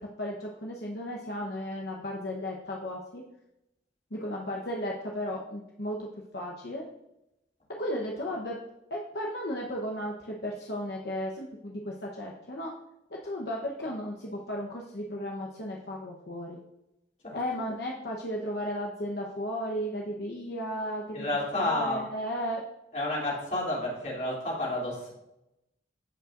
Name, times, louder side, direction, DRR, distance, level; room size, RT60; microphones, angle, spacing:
voice 1, 0.2-3.2 4.1-6.1 6.3-6.8 7.8-8.6 8.9-12.7 13.2-16.6 17.3-21.3 21.5-22.6, equal, 60° left, -1 dB, 1.0 m, -34 dB
voice 2, 21.1-22.0 22.9-25.1, left 1 dB, 40° left, -4 dB, 3.0 m, -30 dB
15.0 x 5.5 x 2.6 m, 0.88 s
head